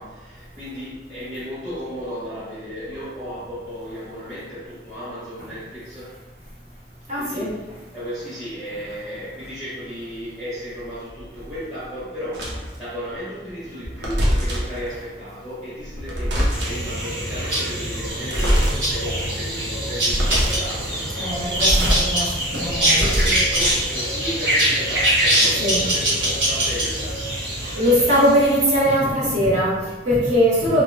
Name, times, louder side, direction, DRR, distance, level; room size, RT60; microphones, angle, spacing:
voice 1, 0.0-6.1 7.1-7.7 7.9-21.9 23.0-27.2, equal, 20° right, -13 dB, 1.2 m, -34 dB
voice 2, 7.1-7.5 21.2-23.0 25.6-25.8 27.6-30.8, equal, 35° right, -8 dB, 1.0 m, -20 dB
sound 1, 12.3-12.8 13.8-14.8 15.8-16.9 18.2-18.8 19.2-19.3 19.9-20.8 21.4-22.0 22.4-23.8, equal, 70° right, 0.7 m, -23 dB
sound 2, 16.5-28.8, right 1 dB, 90° right, 1.3 m, -23 dB
3.1 x 2.8 x 2.2 m, 1.2 s
head